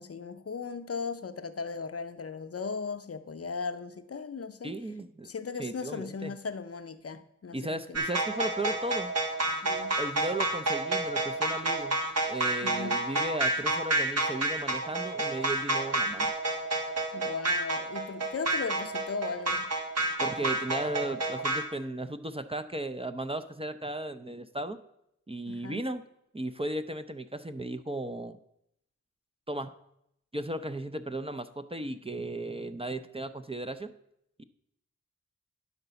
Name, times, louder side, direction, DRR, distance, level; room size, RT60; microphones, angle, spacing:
voice 1, 0.0-4.7 5.2-8.0 9.6-10.0 12.6-13.0 17.1-19.7 25.5-25.8, left 5 dB, 50° left, 10 dB, 0.7 m, -37 dB
voice 2, 4.6-5.3 5.6-6.3 7.5-9.1 10.0-12.0 12.3-16.3 20.2-24.8 25.3-26.0 26.3-28.4 29.5-29.7 30.3-33.9 34.4-34.5, right 1 dB, 20° right, 10 dB, 0.6 m, -35 dB
sound 1, 7.9-21.6, right 2 dB, 55° right, 1.4 m, -29 dB
11.0 x 4.0 x 6.8 m, 0.77 s
cardioid pair, 45°, 31 cm